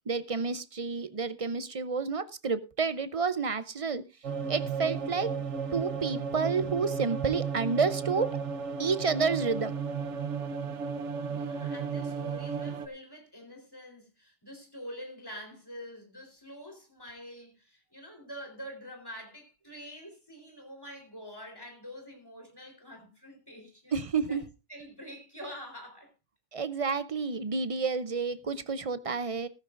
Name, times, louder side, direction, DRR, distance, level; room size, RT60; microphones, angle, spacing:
voice 1, 0.1-4.0 4.5-5.3 5.7-8.4 8.8-9.7 23.9-24.4 26.5-29.5, right 5 dB, 35° right, 0.6 m, -30 dB
sound 1, 4.2-12.9, right 6 dB, 75° right, 1.2 m, -34 dB
voice 2, 11.3-23.9 24.3-24.4 24.7-26.1, equal, 20° left, 3.9 m, -46 dB
14.5 x 14.5 x 2.5 m
omnidirectional pair, 1.2 m